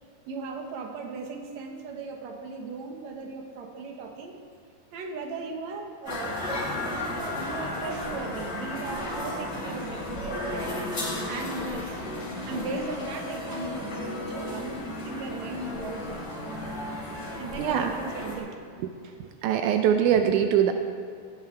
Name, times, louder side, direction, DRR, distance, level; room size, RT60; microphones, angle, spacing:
voice 1, 0.3-4.3 4.9-10.8 11.2-12.1 12.4-16.4 17.4-18.6 19.0-19.2, right 4 dB, 60° right, 3 dB, 2.1 m, -38 dB
sound 1, 6.1-18.4, left 1 dB, 25° left, 3.4 m, -34 dB
voice 2, 17.6-17.9 18.8-18.9 19.4-20.7, right 9 dB, 80° right, 6 dB, 1.8 m, -22 dB
18.0 x 14.0 x 3.4 m, 2.4 s
omnidirectional pair, 4.3 m